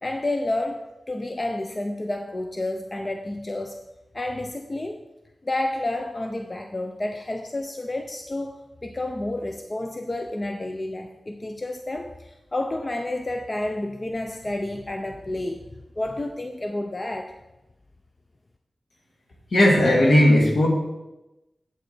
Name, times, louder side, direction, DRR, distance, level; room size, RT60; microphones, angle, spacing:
voice 1, 0.0-3.8 4.1-5.0 5.4-15.6 16.0-17.4, left 1 dB, 30° left, 4 dB, 0.6 m, -30 dB
voice 2, 19.5-20.7, left 1 dB, 65° left, -1 dB, 2.1 m, -16 dB
8.0 x 7.8 x 4.3 m, 0.99 s
wide cardioid pair, 85°, 0 cm